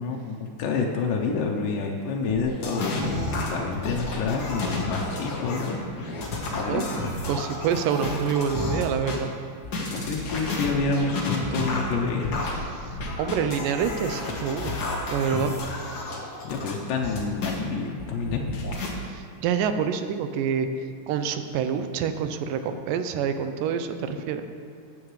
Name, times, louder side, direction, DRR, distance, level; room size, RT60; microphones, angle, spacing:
voice 1, 0.0-5.8 6.5-6.9 9.9-12.4 16.4-18.7, left 4 dB, 80° left, 0 dB, 2.3 m, -28 dB
sound 1, 2.3-9.2 9.6-17.6 18.0-18.9, left 2 dB, 65° left, 1.0 m, -31 dB
voice 2, 6.7-7.0 7.3-9.3 12.7-12.9 13.2-14.7 15.1-15.5 19.0-20.7 21.1-24.5, right 7 dB, 85° right, 8 dB, 2.2 m, -27 dB
15.0 x 8.8 x 3.2 m, 2.3 s
omnidirectional pair, 3.9 m